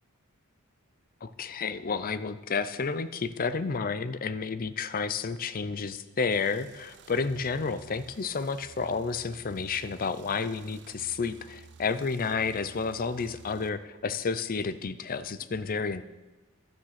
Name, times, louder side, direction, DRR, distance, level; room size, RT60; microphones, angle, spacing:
voice 1, 1.2-16.0, left 5 dB, 40° left, 14 dB, 0.5 m, -31 dB
sound 1, 6.3-13.7, right 5 dB, 50° right, 0.6 m, -53 dB
12.0 x 8.8 x 5.9 m, 1.1 s
head